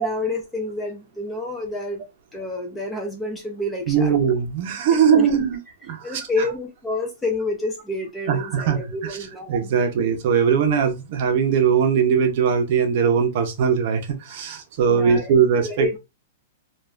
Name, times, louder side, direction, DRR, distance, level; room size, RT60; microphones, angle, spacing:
voice 1, 0.0-2.0 2.3-4.2 5.1-5.3 6.0-9.7 14.9-15.3 15.6-16.0, left 2 dB, 5° left, 0.4 m, -29 dB
voice 2, 3.9-5.6 5.8-6.5 8.3-9.2 9.5-16.0, right 7 dB, 40° right, 0.6 m, -20 dB
3.1 x 2.3 x 2.3 m
supercardioid pair, 175°, 0 cm